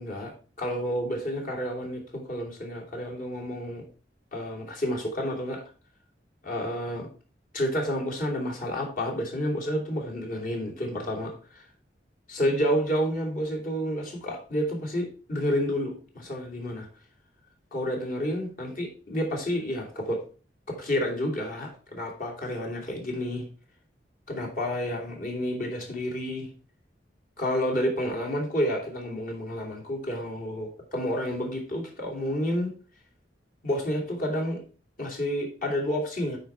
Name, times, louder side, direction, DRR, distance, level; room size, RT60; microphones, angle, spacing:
voice 1, 0.0-3.9 4.3-5.6 6.4-7.1 7.5-11.6 12.3-16.9 17.7-20.2 20.7-23.5 24.3-26.5 27.4-32.7 33.6-34.6 35.0-36.4, equal, 50° left, 0 dB, 2.7 m, -30 dB
9.3 x 4.8 x 4.4 m, 0.37 s
head